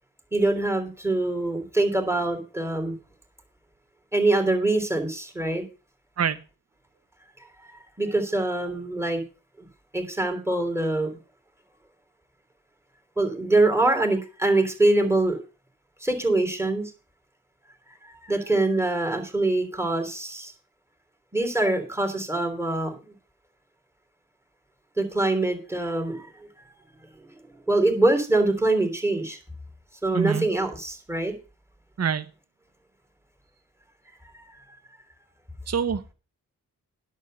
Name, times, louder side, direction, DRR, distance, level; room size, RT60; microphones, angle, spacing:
voice 1, 0.3-2.9 4.1-5.6 7.7-9.2 9.6-9.7 9.9-11.2 13.2-15.4 16.0-16.8 18.0-20.5 21.3-23.1 25.0-26.3 27.7-29.4 30.0-31.3 34.3-34.4, right 2 dB, 5° right, 5 dB, 3.3 m, -24 dB
voice 2, 30.1-30.5 32.0-32.3 35.7-36.1, right 7 dB, 45° right, 13 dB, 0.8 m, -25 dB
10.5 x 6.7 x 6.6 m, 0.33 s
wide cardioid pair, 100°, 35 cm